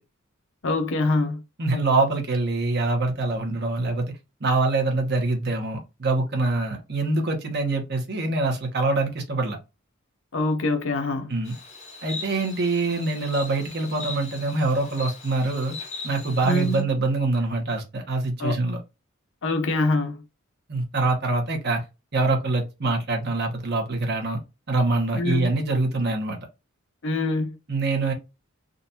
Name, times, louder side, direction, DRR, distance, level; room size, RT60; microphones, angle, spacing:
voice 1, 0.6-1.4 10.3-11.3 16.4-16.9 18.4-18.6 19.4-20.2 25.2-25.5 27.0-27.6, left 2 dB, 65° left, 0.8 m, -24 dB
voice 2, 1.6-9.6 11.3-11.5 12.0-15.8 16.0-18.8 20.7-21.8 22.1-24.4 24.7-26.4 27.7-28.1, right 2 dB, 55° right, 1.1 m, -24 dB
Insect, 11.4-16.8, left 4 dB, 35° left, 1.4 m, -39 dB
3.8 x 2.5 x 2.8 m
head